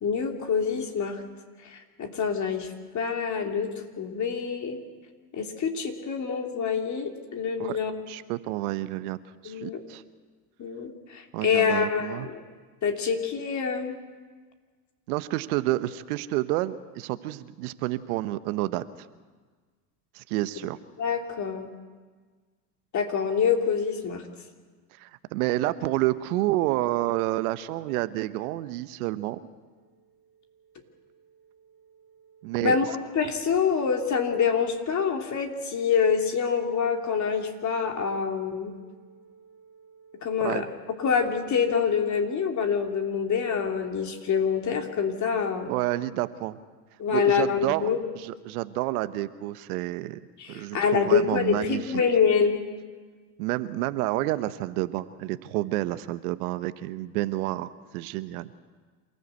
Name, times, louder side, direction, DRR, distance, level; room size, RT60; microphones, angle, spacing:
voice 1, 0.0-1.2 1.6-3.7 4.0-4.8 5.3-7.9 9.5-9.8 10.6-12.4 12.8-14.0 21.0-21.7 22.9-24.2 32.6-32.9 33.2-38.7 40.2-40.6 41.0-45.7 47.0-48.0 50.4-52.6, left 6 dB, 35° left, 4 dB, 3.3 m, -26 dB
voice 2, 8.1-9.2 9.4-10.0 11.3-12.3 15.1-18.8 20.1-20.8 24.9-29.4 32.4-32.8 40.4-40.6 45.6-46.6 47.1-47.9 48.2-50.2 50.5-52.0 53.4-58.5, right 17 dB, 65° right, 13 dB, 1.1 m, -29 dB
sound 1, 28.3-45.2, right 6 dB, ahead, 7.1 m, -56 dB
27.5 x 15.5 x 8.3 m, 1.5 s
hypercardioid pair, 85°, 47 cm